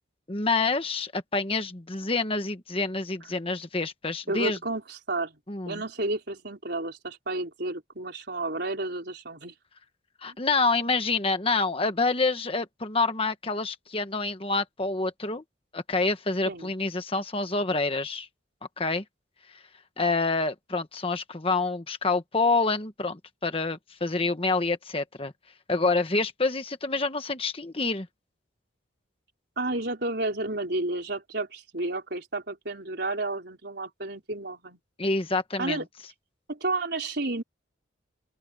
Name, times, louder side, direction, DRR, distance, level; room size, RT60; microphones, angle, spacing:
voice 1, 0.3-4.6 5.5-5.8 10.2-15.4 15.7-18.3 18.8-19.0 20.0-25.3 25.7-28.1 35.0-35.8, left 3 dB, 30° left, 1.3 m, -27 dB
voice 2, 4.3-5.4 5.7-9.5 10.3-10.4 16.5-16.7 29.6-34.8 35.6-35.8 36.5-37.4, right 2 dB, 60° right, 4.6 m, -31 dB
open air
head